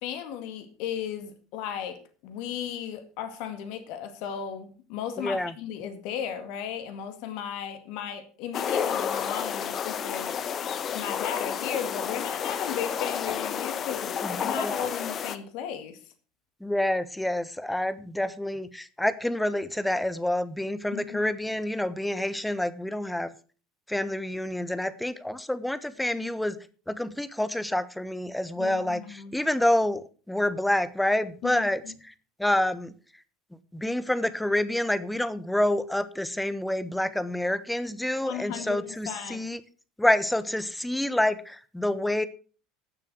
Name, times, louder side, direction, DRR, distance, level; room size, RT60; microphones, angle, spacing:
voice 1, 0.0-10.3 10.9-16.0 20.9-21.3 28.6-29.3 31.4-31.9 38.2-39.5, left 9 dB, 60° left, 2.1 m, -35 dB
voice 2, 5.2-5.5 14.2-14.9 16.6-23.3 23.9-26.6 26.9-31.8 32.1-32.2 32.4-32.9 33.7-39.6 40.0-42.2, left 1 dB, 5° left, 1.2 m, -28 dB
sound 1, 8.5-15.4, left 8 dB, 40° left, 1.2 m, -31 dB
12.5 x 7.4 x 6.3 m
hypercardioid pair, 75°, 0 cm